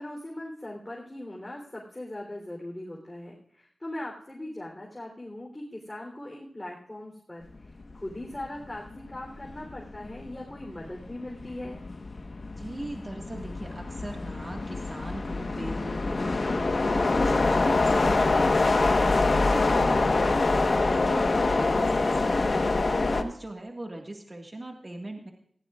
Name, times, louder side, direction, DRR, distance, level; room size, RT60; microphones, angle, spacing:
voice 1, 0.0-7.5 7.9-11.8, left 1 dB, 20° left, -2 dB, 3.4 m, -40 dB
sound 1, 8.2-8.5 8.9-23.2, left 3 dB, 55° left, 1.2 m, -25 dB
voice 2, 12.6-25.3, right 1 dB, 35° right, 2 dB, 1.7 m, -40 dB
18.5 x 16.0 x 2.4 m, 0.64 s
cardioid pair, 60°, 0 cm